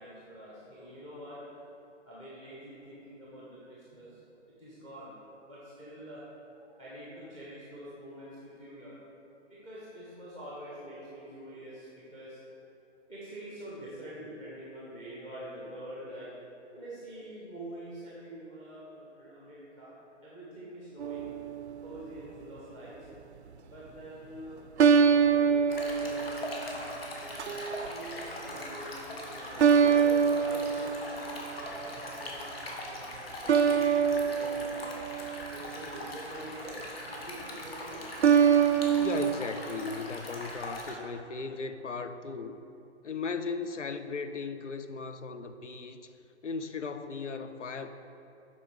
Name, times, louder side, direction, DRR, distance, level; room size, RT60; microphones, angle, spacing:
voice 1, 0.0-1.4 2.0-4.2 4.6-5.1 5.5-6.2 6.6-9.0 9.5-12.4 13.1-16.3 16.7-19.9 20.2-21.2 21.8-23.0 23.6-24.6 25.1-31.2 31.7-34.9 35.5-38.0, right 1 dB, 10° left, -8 dB, 0.7 m, -46 dB
sound 1, 21.0-21.8 24.8-26.8 27.4-27.9 29.6-31.6 33.5-35.9 38.2-39.3, right 7 dB, 65° right, 0.5 m, -25 dB
Stream, 25.7-40.9, left 1 dB, 55° left, 1.5 m, -41 dB
voice 2, 39.0-42.6 43.0-46.0 46.4-47.9, left 4 dB, 80° left, 9 dB, 0.6 m, -37 dB
10.5 x 4.1 x 4.7 m, 2.8 s
figure-of-eight pair, 130°, 36 cm